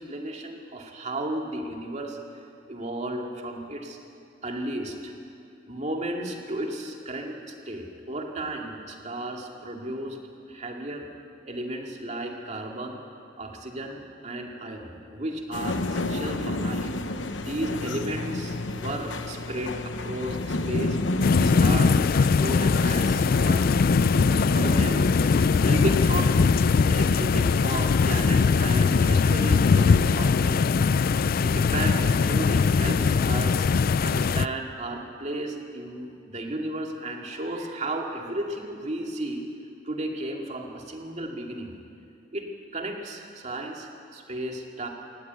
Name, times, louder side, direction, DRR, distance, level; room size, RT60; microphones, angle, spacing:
voice 1, 0.0-2.2 2.7-4.0 4.4-5.1 5.7-10.2 10.5-11.1 11.4-13.0 13.4-16.9 17.4-21.0 21.3-23.7 24.1-26.4 26.9-30.7 31.4-33.7 34.0-39.5 39.8-41.7 42.3-44.9, right 1 dB, 40° right, 1 dB, 2.2 m, -34 dB
sound 1, 15.5-30.3, left 2 dB, 85° left, 0.9 m, -30 dB
sound 2, 21.2-34.5, left 5 dB, 50° left, 0.4 m, -21 dB
19.0 x 15.0 x 9.3 m, 2.5 s
head